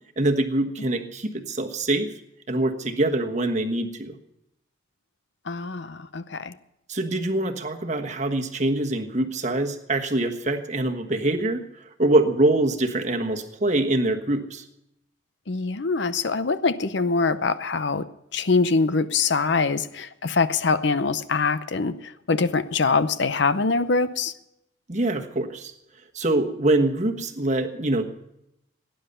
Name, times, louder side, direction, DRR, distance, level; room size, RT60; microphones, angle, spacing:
voice 1, 0.2-2.1 2.5-4.1 6.9-14.6 24.9-25.7 26.1-28.0, right 2 dB, 35° right, 5 dB, 1.3 m, -24 dB
voice 2, 5.5-6.5 15.5-18.1 18.3-24.3, left 4 dB, 60° left, 13 dB, 0.7 m, -24 dB
18.0 x 10.0 x 6.8 m, 0.85 s
head